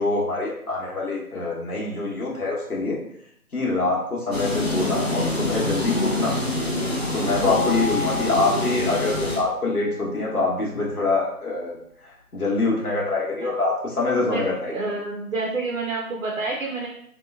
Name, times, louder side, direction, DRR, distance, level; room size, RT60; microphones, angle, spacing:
voice 1, 0.0-3.0 3.5-6.4 7.1-11.8 12.0-14.7, left 3 dB, 65° left, -3 dB, 1.1 m, -25 dB
sound 1, 4.3-9.4, left 1 dB, 45° left, 0.5 m, -26 dB
sound 2, 7.4-10.4, left 4 dB, 25° left, 0.9 m, -32 dB
voice 2, 14.7-16.9, right 3 dB, 55° right, -1 dB, 0.5 m, -28 dB
2.9 x 2.2 x 2.4 m, 0.68 s
figure-of-eight pair, 155°, 47 cm